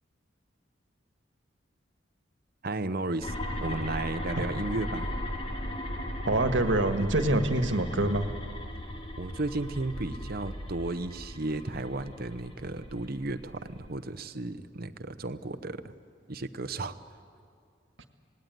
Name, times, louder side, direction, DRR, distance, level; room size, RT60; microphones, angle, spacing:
voice 1, 2.6-3.3 3.6-5.1 9.2-15.9 16.3-17.0, right 2 dB, 55° right, 11 dB, 0.9 m, -34 dB
sound 1, 3.2-13.9, left 1 dB, 30° left, 2.5 m, -37 dB
voice 2, 6.2-8.3, right 2 dB, 80° right, 8 dB, 1.6 m, -25 dB
26.5 x 18.5 x 9.4 m, 2.3 s
head